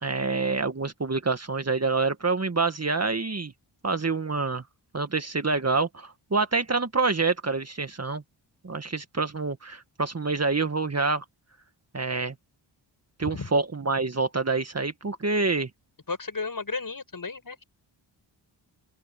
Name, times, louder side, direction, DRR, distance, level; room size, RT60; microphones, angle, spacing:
voice 1, 0.0-3.5 3.8-4.6 4.9-8.2 8.6-11.2 11.9-12.3 13.2-15.7, right 3 dB, 30° right, 1.9 m, -27 dB
voice 2, 16.1-17.6, left 4 dB, 45° left, 6.6 m, -33 dB
open air
supercardioid pair, 45°, 49 cm